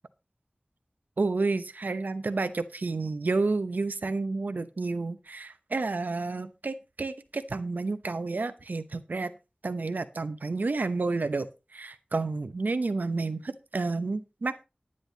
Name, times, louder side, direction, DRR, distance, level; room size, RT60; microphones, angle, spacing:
voice 1, 1.2-9.3 9.6-11.5 11.7-14.6, right 3 dB, 85° right, 11 dB, 0.9 m, -30 dB
10.5 x 10.0 x 4.0 m, 0.28 s
wide cardioid pair, 60°, 3 cm